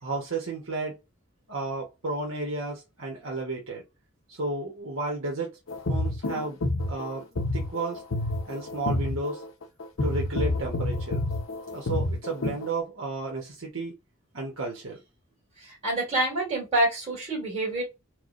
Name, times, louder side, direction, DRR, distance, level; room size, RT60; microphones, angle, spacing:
voice 1, 0.0-1.0 1.5-3.8 4.3-5.6 5.9-6.6 6.9-8.0 8.4-9.4 10.0-11.3 11.7-13.9 14.3-15.0, right 3 dB, 85° right, 1.1 m, -33 dB
sound 1, 5.7-12.7, left 2 dB, 80° left, 0.7 m, -29 dB
voice 2, 15.6-17.8, right 1 dB, 30° right, 1.8 m, -27 dB
4.6 x 2.2 x 2.5 m
head